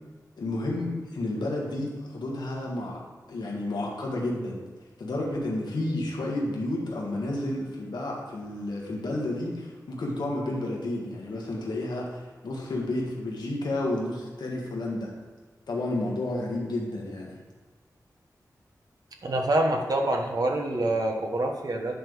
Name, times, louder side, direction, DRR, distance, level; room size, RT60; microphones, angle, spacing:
voice 1, 0.4-3.0 3.3-4.6 5.0-15.1 15.7-17.4, left 1 dB, 90° left, -2 dB, 1.7 m, -31 dB
voice 2, 19.2-22.0, right 1 dB, 65° right, 2 dB, 1.2 m, -26 dB
10.5 x 3.5 x 6.3 m, 1.4 s
cardioid pair, 60°, 7 cm